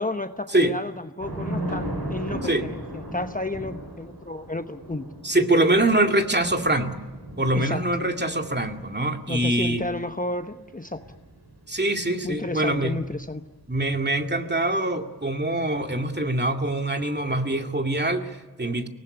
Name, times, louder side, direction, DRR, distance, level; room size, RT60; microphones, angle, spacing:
voice 1, 0.0-5.0 7.5-7.8 9.3-11.0 12.2-13.4, left 2 dB, 20° left, 7 dB, 1.1 m, -32 dB
Thunder / Rain, 1.2-13.7, right 1 dB, 85° right, 6.7 m, -37 dB
voice 2, 5.2-7.0 7.4-9.8 11.7-13.0 13.7-18.9, right 1 dB, 25° right, 4 dB, 2.3 m, -24 dB
23.5 x 19.0 x 10.0 m, 1.2 s
cardioid pair, 45°, 39 cm